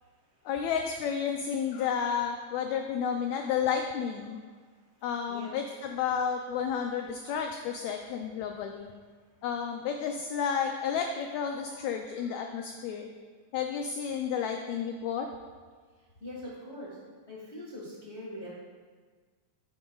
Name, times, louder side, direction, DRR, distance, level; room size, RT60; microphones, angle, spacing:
voice 1, 0.4-4.4 5.0-8.9 9.4-13.1 13.5-15.3, left 7 dB, 85° left, 4 dB, 1.6 m, -31 dB
voice 2, 16.2-17.0 17.3-18.5, left 1 dB, 35° left, -7 dB, 1.1 m, -42 dB
10.5 x 8.7 x 2.3 m, 1.5 s
omnidirectional pair, 3.7 m